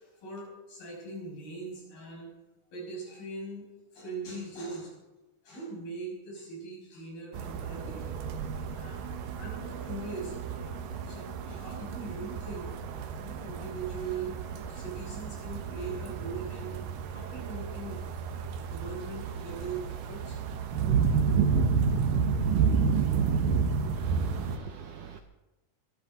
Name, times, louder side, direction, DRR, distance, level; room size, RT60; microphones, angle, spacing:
voice 1, 0.0-2.3 2.7-3.7 3.9-4.9 5.4-8.2 8.7-10.3 10.6-10.8 11.0-12.7 13.2-16.9 17.1-18.0 18.6-20.4, right 3 dB, 65° left, -3 dB, 7.9 m, -41 dB
sound 1, 7.3-24.6, right 6 dB, 70° right, 2.5 m, -30 dB
voice 2, 24.0-25.2, right 7 dB, 90° right, 7 dB, 1.8 m, -44 dB
22.5 x 13.0 x 4.0 m, 1.0 s
omnidirectional pair, 4.5 m